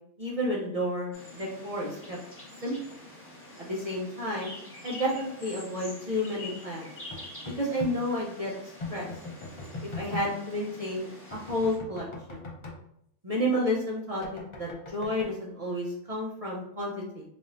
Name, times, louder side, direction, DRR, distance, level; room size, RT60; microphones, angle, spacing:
voice 1, 0.2-2.2 2.6-2.7 3.6-4.5 4.8-6.9 7.6-8.5 8.9-9.1 9.8-12.4 13.2-17.2, left 1 dB, 35° right, -4 dB, 0.6 m, -31 dB
sound 1, 1.1-11.8, left 1 dB, 10° left, 1.1 m, -46 dB
sound 2, 7.1-7.9 8.8-10.3 11.3-12.8 14.2-15.3, left 3 dB, 35° left, 0.5 m, -39 dB
3.9 x 3.6 x 2.6 m, 0.74 s
omnidirectional pair, 1.6 m